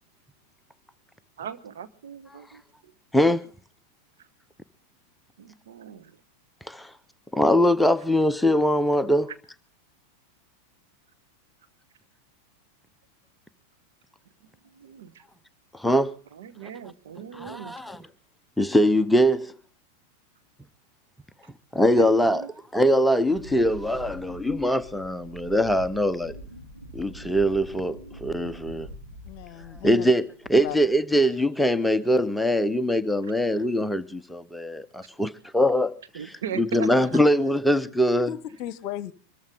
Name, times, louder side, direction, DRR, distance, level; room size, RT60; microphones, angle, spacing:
voice 1, 1.4-3.4 4.2-4.3 5.4-6.2 14.4-15.2 16.3-17.8 21.4-21.5 21.9-22.5 30.5-30.8 33.2-33.3 35.0-35.1 36.1-37.2, right 8 dB, 60° right, 1.4 m, -39 dB
voice 2, 3.1-3.5 6.7-6.9 7.3-9.3 15.7-16.2 17.4-18.0 18.6-19.5 21.7-22.4 22.7-26.4 26.9-28.9 29.8-36.0 36.6-38.3, equal, 5° left, 0.7 m, -22 dB
Wind, 23.3-30.1 30.4-30.9, right 1 dB, 85° right, 2.8 m, -44 dB
voice 3, 29.2-30.1 30.6-30.8 38.3-39.1, left 12 dB, 45° left, 1.0 m, -35 dB
24.0 x 14.0 x 3.8 m
figure-of-eight pair, 90°, 0 cm